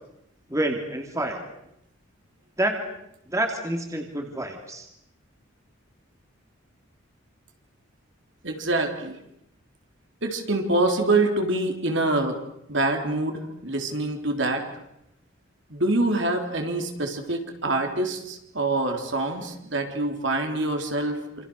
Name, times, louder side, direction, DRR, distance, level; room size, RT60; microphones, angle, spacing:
voice 1, 0.5-1.4 2.6-2.9 3.3-4.9, right 1 dB, 15° right, 3 dB, 2.8 m, -28 dB
voice 2, 8.4-9.2 10.2-12.4 12.7-14.7 15.7-21.4, right 2 dB, 60° right, 4 dB, 4.1 m, -25 dB
28.0 x 27.5 x 6.6 m, 0.81 s
head